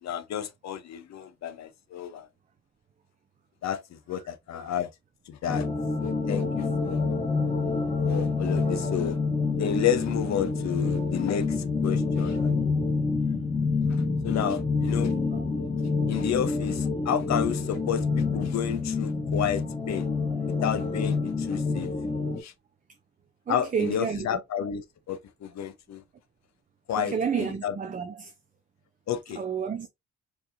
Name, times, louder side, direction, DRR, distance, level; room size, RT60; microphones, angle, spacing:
voice 1, 0.0-2.3 3.6-4.9 5.3-5.7 6.0-7.0 8.0-9.2 9.6-12.5 13.9-15.1 16.1-20.1 20.6-21.9 22.4-22.5 23.5-26.0 26.9-27.8 29.1-29.4, left 9 dB, 65° left, 0.8 m, -31 dB
sound 1, 5.5-22.4, left 4 dB, 20° left, 1.4 m, -27 dB
voice 2, 23.5-24.4 26.9-28.3 29.3-29.9, right 6 dB, 25° right, 0.5 m, -31 dB
4.5 x 2.8 x 2.6 m
cardioid pair, 90°, 30 cm